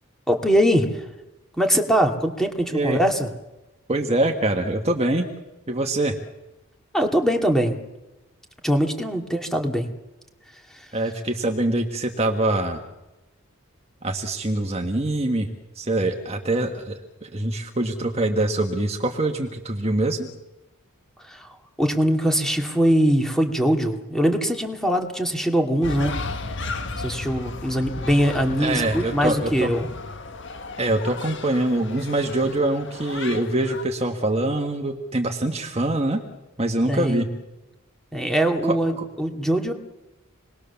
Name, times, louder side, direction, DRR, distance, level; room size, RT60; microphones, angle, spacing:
voice 1, 0.3-1.1 1.6-3.3 6.9-7.8 8.6-9.9 10.7-10.9 21.2-21.5 21.8-26.2 27.0-29.9 36.9-37.3 38.1-39.7, equal, ahead, 3 dB, 2.6 m, -22 dB
voice 2, 3.9-5.3 5.7-6.2 10.9-12.8 14.0-15.5 15.7-20.3 28.6-29.7 30.8-36.2 36.6-37.3 38.6-39.0, right 1 dB, 30° right, 3 dB, 1.7 m, -24 dB
sound 1, 25.8-33.8, left 3 dB, 55° left, 1.6 m, -34 dB
27.5 x 21.0 x 7.1 m, 1.0 s
head